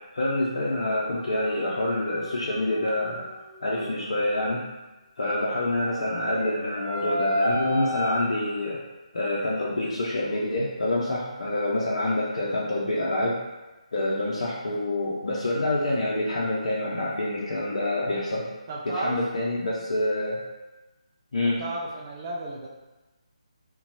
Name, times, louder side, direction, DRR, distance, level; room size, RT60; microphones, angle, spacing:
voice 1, 0.1-3.3 3.6-4.6 5.2-8.8 9.1-13.4 13.9-18.5 18.9-20.4 21.3-21.6, left 1 dB, 55° left, -6 dB, 0.6 m, -27 dB
sound 1, 1.1-4.1 5.8-8.2, equal, ahead, 1.0 m, -32 dB
voice 2, 18.7-19.2 21.4-22.7, right 2 dB, 30° right, -3 dB, 0.4 m, -33 dB
2.9 x 2.2 x 3.9 m, 1.1 s
figure-of-eight pair, 150°, 4 cm